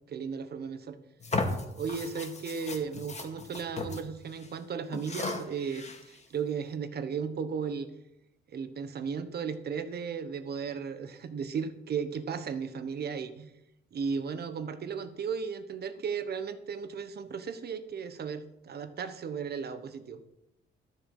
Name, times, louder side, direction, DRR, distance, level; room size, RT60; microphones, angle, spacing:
voice 1, 0.1-1.0 1.8-7.9 8.5-13.5 13.9-20.2, right 6 dB, 55° right, 10 dB, 1.3 m, -35 dB
sound 1, 1.2-4.0 4.3-4.5 4.9-6.2, left 3 dB, 35° left, 2.2 m, -35 dB
13.0 x 7.3 x 5.6 m, 0.87 s
cardioid pair, 90°, 20 cm